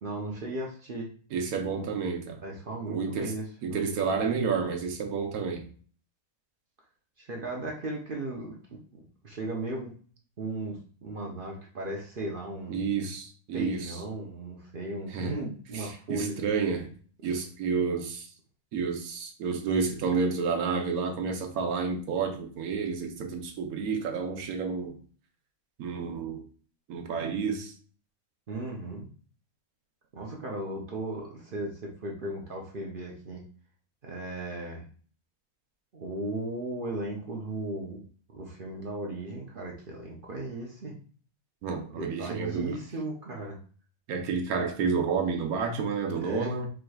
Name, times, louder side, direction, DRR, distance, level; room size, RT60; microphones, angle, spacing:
voice 1, 0.0-1.1 1.7-1.9 2.4-3.9 7.2-9.9 10.4-12.8 13.5-16.4 28.5-29.1 30.1-33.4 34.0-34.8 35.9-38.0 38.3-41.0 41.9-43.6 46.2-46.5, right 2 dB, 50° right, -1 dB, 0.7 m, -36 dB
voice 2, 1.3-2.4 2.9-3.3 3.6-5.6 12.7-14.0 15.1-15.3 15.7-16.9 17.2-18.3 18.7-25.0 25.8-26.4 26.9-27.7 41.6-42.8 44.1-46.7, right 5 dB, 75° right, 3 dB, 1.2 m, -30 dB
4.7 x 3.1 x 2.3 m, 0.43 s
omnidirectional pair, 1.6 m